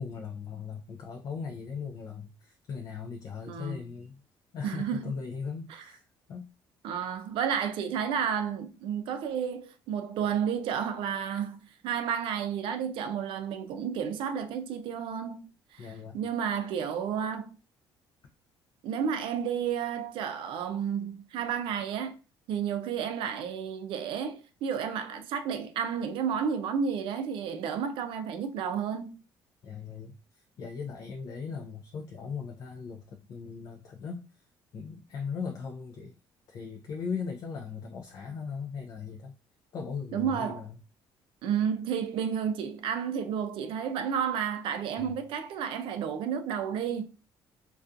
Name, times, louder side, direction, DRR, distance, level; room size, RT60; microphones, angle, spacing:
voice 1, 0.0-4.2 4.5-6.0 6.3-6.4 15.8-16.2 29.6-34.3 34.7-36.1 36.5-39.3 39.7-40.8 45.0-45.2, left 6 dB, 45° left, 0.3 m, -38 dB
voice 2, 3.5-3.9 4.6-5.0 6.8-15.5 15.7-15.9 16.1-17.5 18.8-22.2 22.5-29.1 40.1-40.7 41.4-47.0, right 7 dB, 70° right, 0.4 m, -31 dB
2.4 x 2.3 x 2.5 m
cardioid pair, 140°, 9 cm